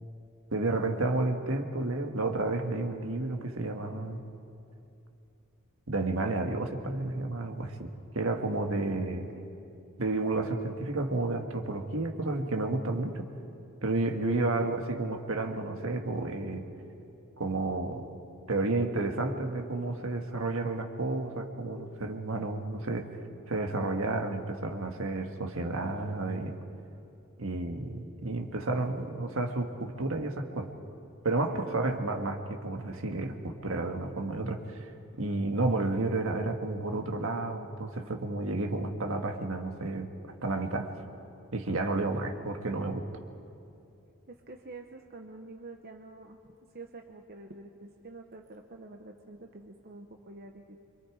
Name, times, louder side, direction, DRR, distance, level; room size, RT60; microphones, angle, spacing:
voice 1, 0.5-4.2 5.9-7.9 8.1-9.3 10.0-13.3 13.8-16.6 17.4-18.1 18.5-23.1 23.5-26.5 27.4-30.7 31.2-34.9 35.2-40.9 41.5-43.0, right 2 dB, 65° right, 4 dB, 1.7 m, -31 dB
voice 2, 9.1-9.5 14.3-14.6 31.5-31.8 42.1-42.3 44.3-46.4 46.7-50.8, right 2 dB, 45° right, 3 dB, 1.1 m, -48 dB
26.5 x 25.0 x 4.9 m, 2.7 s
head